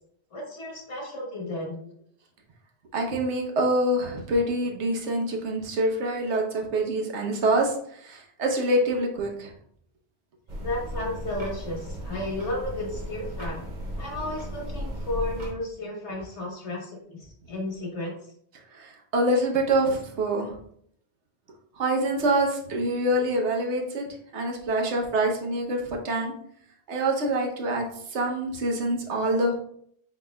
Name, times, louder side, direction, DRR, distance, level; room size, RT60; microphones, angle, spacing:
voice 1, 0.3-1.9 10.6-13.6 14.0-18.1, left 1 dB, 80° left, -1 dB, 1.5 m, -33 dB
voice 2, 2.9-7.7 8.0-9.5 18.7-20.5 21.8-24.1 24.3-26.3 26.9-27.9 28.1-29.5, right 1 dB, 90° right, 2 dB, 1.1 m, -25 dB
sound 1, 10.5-15.5, equal, 45° right, 1.0 m, -35 dB
4.7 x 4.2 x 2.2 m, 0.66 s
omnidirectional pair, 1.1 m